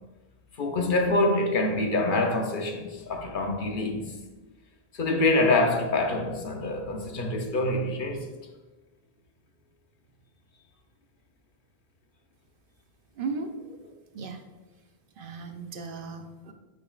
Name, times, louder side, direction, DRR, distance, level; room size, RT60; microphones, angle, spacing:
voice 1, 0.6-4.1 4.9-8.2, left 2 dB, 55° left, 0.8 m, -25 dB
voice 2, 13.2-14.4 15.2-16.5, right 4 dB, 65° right, 0.7 m, -37 dB
8.6 x 5.1 x 2.3 m
omnidirectional pair, 1.1 m